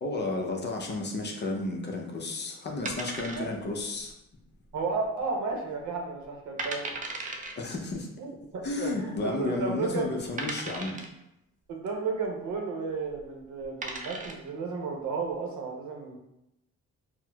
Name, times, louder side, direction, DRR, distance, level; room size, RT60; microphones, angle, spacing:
voice 1, 0.0-4.1 7.6-8.1 8.6-11.0, left 2 dB, 35° left, 0 dB, 0.6 m, -32 dB
sound 1, 2.9-3.8 4.1-4.2 4.8-5.2 5.6-5.7 6.2-6.3 6.6-7.6 8.6-8.7 9.4-9.5 10.4-11.2 13.0-13.2 13.6-14.5, right 3 dB, 25° right, 0.4 m, -36 dB
voice 2, 4.7-6.9 8.2-10.1 11.7-16.2, right 4 dB, 70° right, 0 dB, 0.7 m, -33 dB
4.1 x 2.1 x 2.3 m, 0.85 s
cardioid pair, 90°, 30 cm